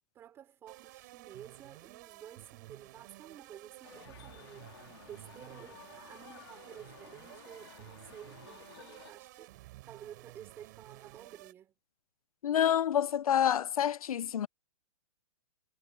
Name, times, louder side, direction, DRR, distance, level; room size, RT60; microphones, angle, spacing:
voice 1, 0.1-11.7, right 10 dB, 15° right, 4.7 m, -52 dB
sound 1, 0.7-11.5, right 18 dB, 35° right, 4.0 m, -53 dB
sound 2, 3.8-9.1, left 12 dB, 45° left, 3.6 m, -55 dB
voice 2, 12.4-14.5, left 10 dB, 90° left, 0.5 m, -28 dB
hypercardioid pair, 170°, 18 cm